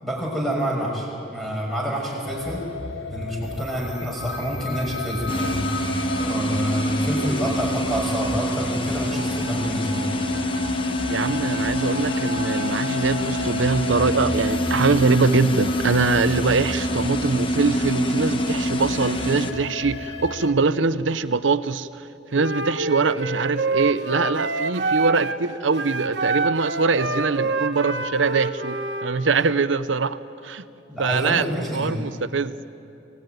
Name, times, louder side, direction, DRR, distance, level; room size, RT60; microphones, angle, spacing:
voice 1, 0.0-2.6 3.1-5.6 6.2-10.1 30.9-31.9, equal, ahead, -3 dB, 5.9 m, -27 dB
sound 1, 2.3-20.5, left 3 dB, 70° left, 1.6 m, -33 dB
sound 2, 5.3-19.5, equal, 25° left, 1.1 m, -26 dB
voice 2, 10.8-22.0 22.3-30.6 31.0-32.5, right 4 dB, 85° right, 14 dB, 0.7 m, -23 dB
Wind instrument woodwind instrument, 22.3-25.4 25.7-29.1, right 3 dB, 65° right, 1.2 m, -26 dB
25.5 x 18.0 x 9.2 m, 2.7 s
head